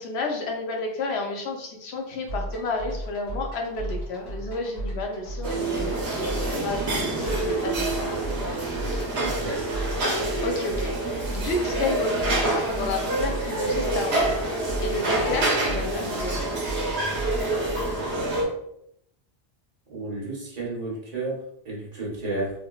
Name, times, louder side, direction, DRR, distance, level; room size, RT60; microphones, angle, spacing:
voice 1, 0.0-8.3 8.9-9.0 10.4-14.4 14.8-16.4, left 3 dB, 85° left, 2 dB, 1.0 m, -31 dB
sound 1, 2.3-18.1, right 1 dB, 70° left, 1.9 m, -35 dB
sound 2, 5.4-18.4, right 2 dB, 85° right, 1.1 m, -27 dB
voice 2, 9.2-9.6 19.9-21.4 21.6-22.5, right 2 dB, 40° right, -5 dB, 1.2 m, -32 dB
3.6 x 2.9 x 2.3 m, 0.75 s
omnidirectional pair, 1.1 m